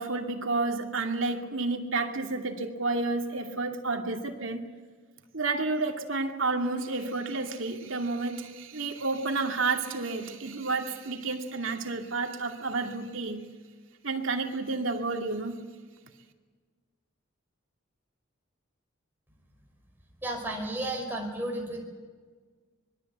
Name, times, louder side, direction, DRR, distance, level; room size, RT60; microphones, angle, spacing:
voice 1, 0.0-4.6 5.3-13.4 14.0-15.6, right 3 dB, 70° right, 4 dB, 2.5 m, -30 dB
voice 2, 20.2-21.8, right 1 dB, 10° right, 0 dB, 5.2 m, -33 dB
25.0 x 21.5 x 8.1 m, 1.5 s
head